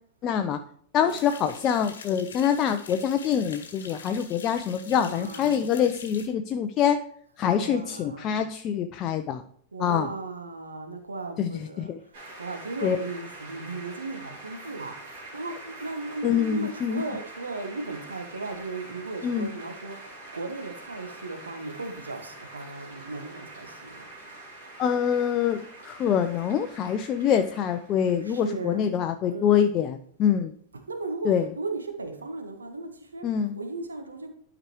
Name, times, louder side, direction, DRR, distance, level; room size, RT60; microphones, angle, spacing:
voice 1, 0.2-0.6 0.9-7.0 7.4-9.4 9.8-10.1 11.4-12.0 12.8-13.0 16.2-17.0 19.2-19.5 24.8-30.5 31.2-31.5 33.2-33.6, left 8 dB, 35° left, 0.4 m, -25 dB
sound 1, 1.1-6.3, left 5 dB, 65° left, 1.1 m, -45 dB
voice 2, 4.9-5.6 7.6-8.4 9.7-24.1 25.4-25.6 28.2-28.9 29.3-29.6 30.7-31.3 31.6-34.3, right 3 dB, 75° right, 1.2 m, -36 dB
sound 2, 12.1-28.8, right 2 dB, 55° right, 2.6 m, -45 dB
11.5 x 5.0 x 3.1 m
figure-of-eight pair, 90°, 0 cm